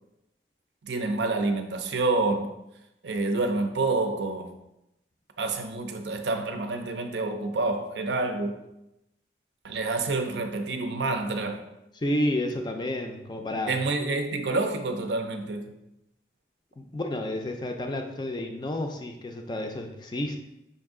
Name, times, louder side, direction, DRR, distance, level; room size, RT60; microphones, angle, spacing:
voice 1, 0.8-2.5 3.0-4.5 5.4-8.7 9.6-11.7 13.7-15.8, right 3 dB, 75° right, 0.5 m, -28 dB
voice 2, 12.0-13.8 16.8-20.4, left 1 dB, 25° left, 0.4 m, -30 dB
5.5 x 2.6 x 3.6 m
head